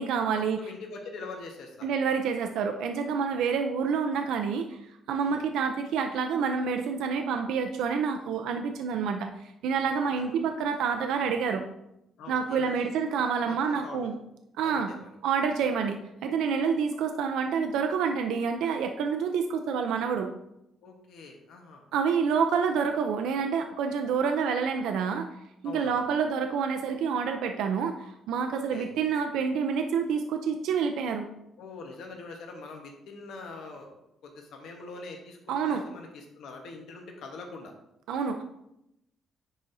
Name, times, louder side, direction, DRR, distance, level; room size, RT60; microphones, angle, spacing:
voice 1, 0.0-0.6 1.8-4.8 5.1-11.7 12.3-14.1 14.6-14.9 15.2-20.3 21.9-25.3 25.6-31.3 35.5-35.8 38.1-38.4, right 6 dB, 85° right, 5 dB, 0.4 m, -28 dB
voice 2, 0.6-1.9 5.2-5.4 10.2-10.4 12.2-12.9 13.4-14.1 14.6-15.1 20.8-21.8 25.6-26.0 28.7-28.9 31.6-33.9 34.2-35.4 35.7-37.7, left 3 dB, 80° left, 2 dB, 1.0 m, -43 dB
10.5 x 4.0 x 2.6 m, 0.83 s
cardioid pair, 90°, 0 cm